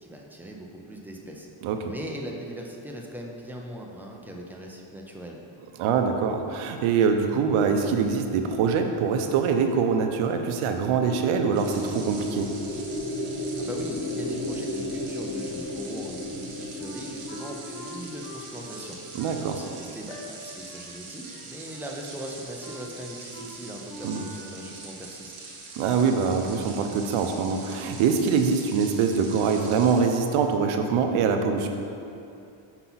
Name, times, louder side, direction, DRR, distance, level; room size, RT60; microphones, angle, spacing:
voice 1, 0.0-1.5 1.9-5.4 13.3-25.3, right 1 dB, 5° right, -1 dB, 0.4 m, -40 dB
voice 2, 5.8-12.5 19.1-19.6 24.0-24.2 25.8-31.7, right 6 dB, 75° right, 5 dB, 0.8 m, -24 dB
sound 1, 10.7-18.9, left 2 dB, 35° left, 0.8 m, -34 dB
sound 2, 11.5-30.1, right 3 dB, 45° right, 1.2 m, -43 dB
Wind instrument woodwind instrument, 16.8-20.3 20.7-20.9 21.2-21.9 22.1-22.9 23.3-23.5 23.8-24.6, equal, 55° left, 1.3 m, -44 dB
5.9 x 5.7 x 3.9 m, 2.6 s
cardioid pair, 145°, 49 cm